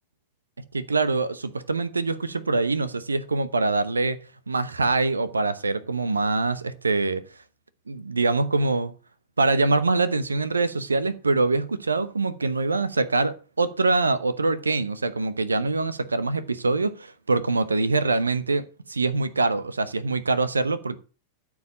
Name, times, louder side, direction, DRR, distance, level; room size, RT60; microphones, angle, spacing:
voice 1, 0.7-4.2 4.5-7.2 7.9-8.9 9.4-21.0, right 3 dB, 75° right, 0.8 m, -24 dB
13.0 x 4.8 x 7.3 m
figure-of-eight pair, 90°, 0 cm